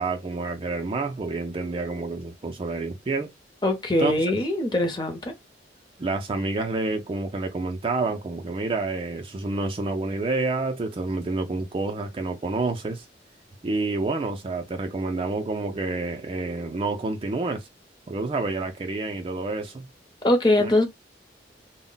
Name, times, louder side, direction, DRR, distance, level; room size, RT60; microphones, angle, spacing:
voice 1, 0.0-3.3 4.0-4.1 6.0-13.0 13.6-17.7 18.1-19.9 20.6-20.7, right 3 dB, 30° right, 0.4 m, -28 dB
voice 2, 3.6-5.3 20.2-20.8, left 1 dB, 25° left, 0.6 m, -22 dB
2.1 x 2.0 x 3.7 m
head